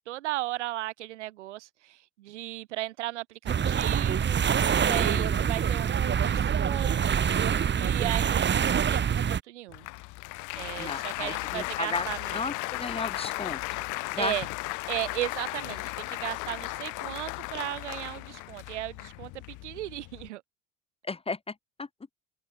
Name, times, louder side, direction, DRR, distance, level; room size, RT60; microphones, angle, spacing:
voice 1, 0.0-4.4 4.7-9.9 10.5-12.4 14.2-14.5 14.9-20.4, right 16 dB, 70° right, 6.5 m, -36 dB
sound 1, 3.5-9.4, right 8 dB, 30° right, 2.4 m, -25 dB
voice 2, 4.8-5.4 10.8-12.1 12.3-13.6 14.1-14.3 21.1-21.5 21.8-21.9, left 3 dB, 15° left, 1.9 m, -34 dB
Applause, 9.7-20.3, left 25 dB, 55° left, 2.3 m, -36 dB
figure-of-eight pair, 70°, 36 cm